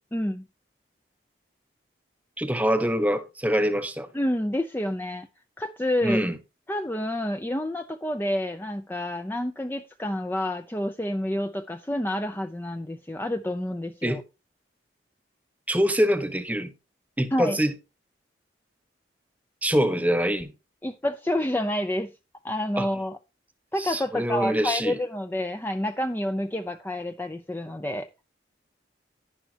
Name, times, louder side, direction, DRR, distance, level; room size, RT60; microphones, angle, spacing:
voice 1, 0.1-0.5 4.1-5.3 5.6-6.2 6.7-14.2 17.3-17.6 20.8-22.1 22.4-23.2 23.7-28.1, left 1 dB, 10° left, 0.5 m, -29 dB
voice 2, 2.4-4.1 6.0-6.4 14.0-14.2 15.7-16.7 17.2-17.7 19.6-20.5 22.8-22.9 23.8-25.0, equal, 10° right, 1.1 m, -24 dB
10.5 x 10.5 x 2.8 m
head